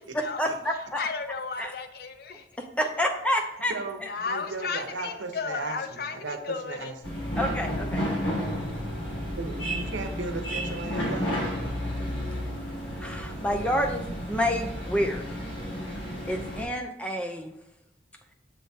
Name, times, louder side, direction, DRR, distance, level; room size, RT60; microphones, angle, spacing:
voice 1, 0.1-1.0 1.6-1.7 2.6-3.7 4.0-4.1 7.4-8.0 13.0-15.4 16.3-17.5, equal, 5° left, 3 dB, 0.5 m, -28 dB
voice 2, 1.0-2.5 4.0-7.0, left 4 dB, 55° left, 8 dB, 0.6 m, -34 dB
voice 3, 3.7-6.9 9.4-11.3, right 3 dB, 85° right, 5 dB, 0.9 m, -36 dB
sound 1, 7.0-16.6, equal, 85° left, 1.8 m, -32 dB
7.3 x 3.5 x 4.3 m, 0.84 s
head